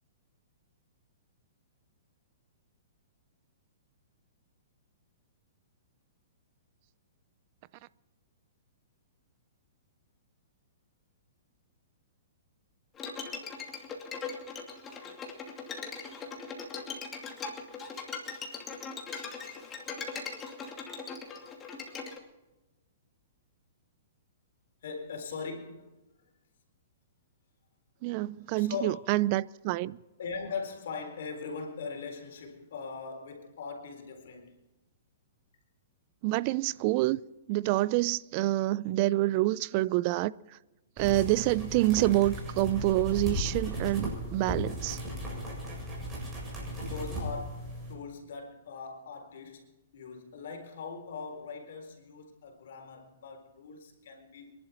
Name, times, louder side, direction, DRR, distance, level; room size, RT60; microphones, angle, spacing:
Bowed string instrument, 13.0-22.2, left 5 dB, 20° left, 2.6 m, -40 dB
voice 1, 24.8-25.9 28.5-29.1 30.2-34.5 37.9-38.1 46.8-54.5, left 5 dB, 70° left, 3.9 m, -40 dB
voice 2, 28.0-30.0 36.2-37.2 37.5-40.3 41.0-45.0, right 17 dB, 40° right, 0.5 m, -27 dB
sound 1, 41.0-47.9, equal, 15° right, 7.4 m, -36 dB
25.5 x 11.5 x 4.5 m
hypercardioid pair, 145°, 0 cm